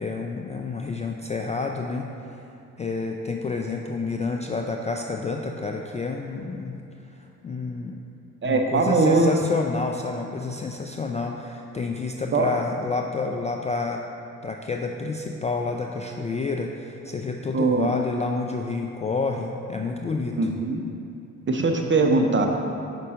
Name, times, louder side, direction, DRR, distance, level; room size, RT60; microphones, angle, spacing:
voice 1, 0.0-2.1 2.8-6.8 7.4-8.0 8.4-14.0 14.4-20.4, left 3 dB, 20° left, 2 dB, 0.3 m, -29 dB
voice 2, 8.4-9.3 12.3-12.5 17.5-17.9 20.4-20.9 21.5-22.5, right 3 dB, 30° right, 3 dB, 0.7 m, -21 dB
5.4 x 5.2 x 3.7 m, 2.7 s
hypercardioid pair, 45°, 38 cm